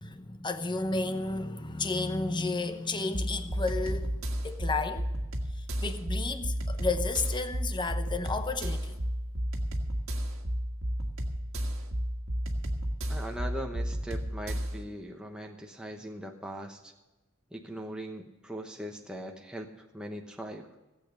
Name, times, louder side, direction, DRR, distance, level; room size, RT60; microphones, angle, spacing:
voice 1, 0.0-5.1 5.8-9.0, left 3 dB, 20° left, 0.9 m, -32 dB
sound 1, 3.1-14.8, equal, 70° right, 1.7 m, -32 dB
voice 2, 13.1-16.9 17.5-20.7, right 1 dB, 5° right, 1.0 m, -40 dB
17.0 x 8.3 x 6.5 m
head